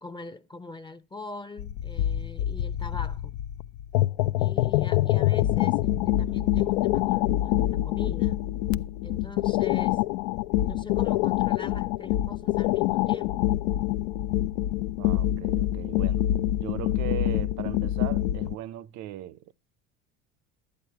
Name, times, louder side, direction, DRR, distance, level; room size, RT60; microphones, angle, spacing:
voice 1, 0.0-3.4 4.4-8.5 9.0-10.1 10.6-13.6, left 3 dB, 15° left, 0.6 m, -42 dB
sound 1, 1.6-18.6, left 14 dB, 85° left, 0.5 m, -26 dB
voice 2, 15.0-16.3 16.6-19.5, right 13 dB, 60° right, 0.6 m, -38 dB
12.0 x 8.4 x 4.7 m
supercardioid pair, 105°, 33 cm